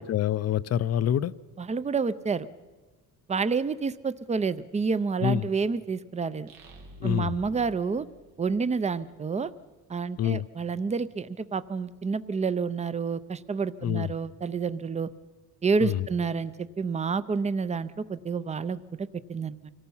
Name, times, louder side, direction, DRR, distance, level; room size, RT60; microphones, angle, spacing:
voice 1, 0.0-1.3 5.2-5.5 7.0-7.3 10.2-10.4 13.8-14.1 15.8-16.1, left 10 dB, 45° left, 16 dB, 0.5 m, -26 dB
voice 2, 1.6-2.5 3.3-6.5 7.0-8.1 8.4-9.5 9.9-15.1 15.6-19.7, right 5 dB, 20° right, 15 dB, 0.5 m, -29 dB
sound 1, 6.5-9.1, equal, 85° right, 2.7 m, -51 dB
25.5 x 18.0 x 5.6 m, 1.2 s
cardioid pair, 145°, 34 cm